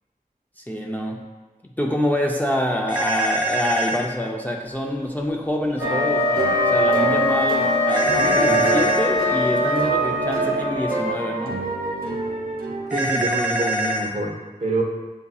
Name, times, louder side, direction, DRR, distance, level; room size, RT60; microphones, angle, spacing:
voice 1, 0.6-1.2 1.8-11.6, left 1 dB, 10° left, 0 dB, 0.4 m, -26 dB
sound 1, 2.9-4.0 7.9-9.0 12.9-14.1, right 1 dB, 10° right, 0.9 m, -24 dB
Wind instrument woodwind instrument, 5.7-10.3, left 4 dB, 75° left, 0.9 m, -24 dB
sound 2, 5.8-13.4, right 2 dB, 80° right, 0.7 m, -24 dB
voice 2, 8.3-8.7 12.9-14.8, right 2 dB, 50° right, -1 dB, 0.9 m, -26 dB
7.0 x 2.7 x 2.3 m, 1.2 s
wide cardioid pair, 40°, 15 cm